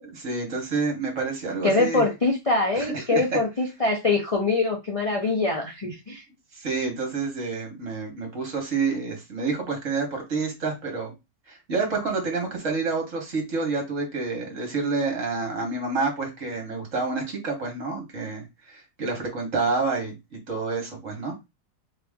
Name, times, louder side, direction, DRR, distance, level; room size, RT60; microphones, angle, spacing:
voice 1, 0.2-2.0 2.7-3.4 6.5-11.1 11.5-21.3, right 4 dB, 45° right, 1 dB, 1.7 m, -28 dB
voice 2, 1.6-6.2, left 3 dB, 45° left, 0 dB, 0.4 m, -24 dB
4.0 x 3.0 x 3.6 m, 0.22 s
omnidirectional pair, 2.0 m